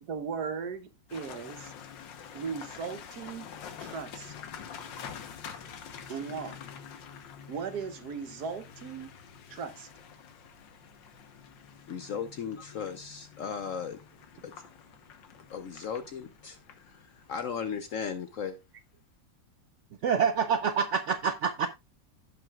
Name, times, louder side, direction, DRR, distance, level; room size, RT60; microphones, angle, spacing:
voice 1, 0.0-1.7 2.3-3.5 3.8-4.3 6.1-6.6 7.5-9.1 9.5-9.9, right 6 dB, 65° right, 1.4 m, -37 dB
sound 1, 1.1-18.3, left 7 dB, 90° left, 1.8 m, -47 dB
voice 2, 11.9-14.0 14.4-14.5 15.5-18.6, left 7 dB, 65° left, 0.8 m, -36 dB
voice 3, 20.0-21.7, right 6 dB, 80° right, 0.6 m, -26 dB
16.0 x 6.0 x 2.4 m
omnidirectional pair, 1.9 m